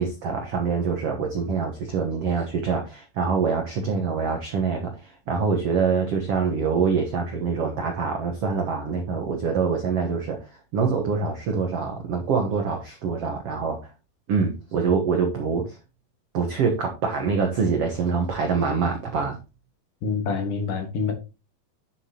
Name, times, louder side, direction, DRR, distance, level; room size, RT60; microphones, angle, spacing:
voice 1, 0.0-13.9 14.3-15.8 16.3-19.4, right 5 dB, 70° right, 1.4 m, -25 dB
voice 2, 20.0-21.1, left 5 dB, 60° left, 2.6 m, -26 dB
9.3 x 7.2 x 2.9 m
omnidirectional pair, 4.5 m